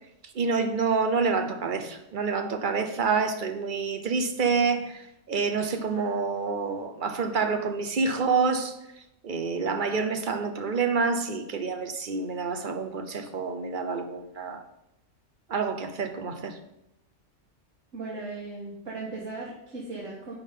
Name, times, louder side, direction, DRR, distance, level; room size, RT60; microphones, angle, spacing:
voice 1, 0.2-14.6 15.5-16.6, right 4 dB, 45° right, 0.8 m, -28 dB
voice 2, 17.9-20.4, right 3 dB, 85° right, 2.1 m, -37 dB
10.0 x 3.8 x 5.5 m
omnidirectional pair, 1.3 m